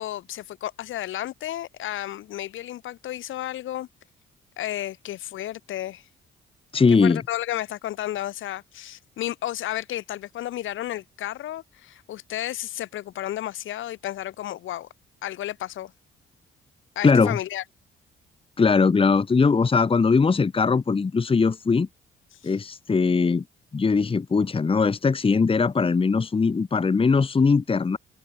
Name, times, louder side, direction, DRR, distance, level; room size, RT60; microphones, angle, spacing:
voice 1, 0.0-3.9 4.6-6.1 6.9-14.9 15.2-15.9 17.0-17.6 22.3-22.5, left 13 dB, 80° left, 3.5 m, -32 dB
voice 2, 6.7-7.2 17.0-17.4 18.6-21.9 22.4-23.4 23.7-28.0, left 4 dB, 25° left, 1.4 m, -20 dB
cardioid pair, 90°, 20 cm